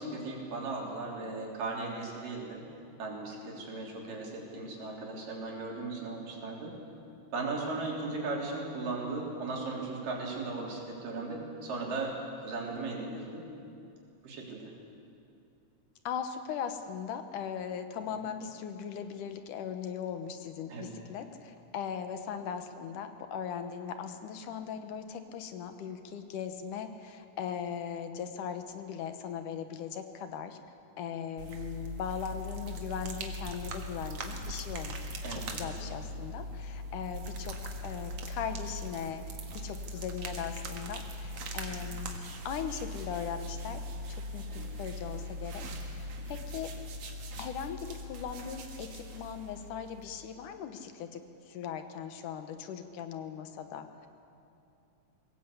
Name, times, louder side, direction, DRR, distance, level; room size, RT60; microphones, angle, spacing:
voice 1, 0.0-2.6 3.0-6.8 7.3-13.5 14.2-14.7 20.7-20.9 35.2-35.9 44.5-44.7 46.2-46.4, right 3 dB, 85° right, -2 dB, 5.1 m, -37 dB
voice 2, 16.0-30.6 31.0-35.0 35.3-37.6 37.8-39.3 39.5-43.8 44.1-46.7 47.4-54.1, left 8 dB, 75° left, 8 dB, 2.6 m, -39 dB
sound 1, 31.4-50.3, equal, 55° right, 2.6 m, -40 dB
22.0 x 17.5 x 8.3 m, 2.6 s
omnidirectional pair, 3.8 m